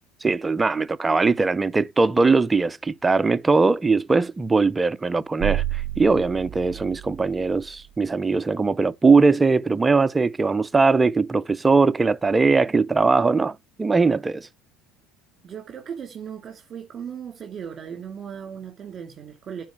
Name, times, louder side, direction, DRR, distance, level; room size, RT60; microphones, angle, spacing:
voice 1, 0.2-14.5, right 4 dB, 15° right, 0.4 m, -20 dB
sound 1, 5.4-7.8, right 13 dB, 55° right, 0.7 m, -30 dB
voice 2, 15.4-19.6, right 8 dB, 35° right, 2.3 m, -37 dB
9.3 x 4.0 x 4.5 m
supercardioid pair, 95°, 0 cm